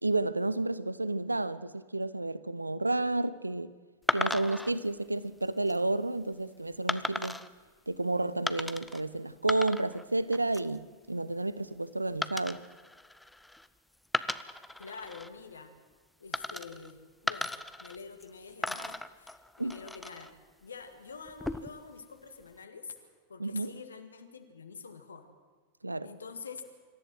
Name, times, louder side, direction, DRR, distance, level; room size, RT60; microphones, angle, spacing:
voice 1, 0.0-3.7 4.1-7.3 7.9-12.6 19.6-19.8 23.4-23.7 25.8-26.1, right 2 dB, 85° right, 0.7 m, -31 dB
sound 1, 4.1-4.7 5.4-5.8 6.9-7.5 8.5-9.0 9.3-10.0 10.3-10.8 12.2-13.7 14.0-15.3 16.3-16.9 17.3-18.3 18.6-20.3 21.3-21.9, left 1 dB, 5° left, 0.7 m, -36 dB
voice 2, 14.8-15.7 16.2-17.5 17.8-23.0 23.3-25.3 26.0-26.6, left 5 dB, 75° left, 2.0 m, -46 dB
25.5 x 14.5 x 7.8 m
figure-of-eight pair, 90°, 0 cm